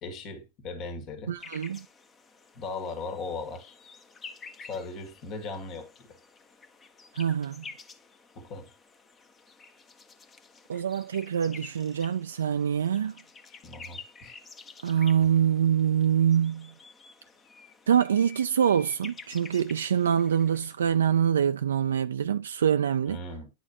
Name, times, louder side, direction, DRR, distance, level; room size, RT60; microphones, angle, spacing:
voice 1, 0.0-1.4 2.5-3.8 4.6-6.1 8.3-8.7 13.5-14.3 23.1-23.5, left 3 dB, 45° left, 1.7 m, -38 dB
voice 2, 1.3-1.9 7.1-7.6 10.7-13.1 14.8-16.7 17.9-23.2, right 8 dB, 90° right, 0.3 m, -25 dB
sound 1, 1.4-20.7, left 5 dB, 25° left, 1.0 m, -50 dB
9.9 x 4.3 x 2.9 m
hypercardioid pair, 110°, 0 cm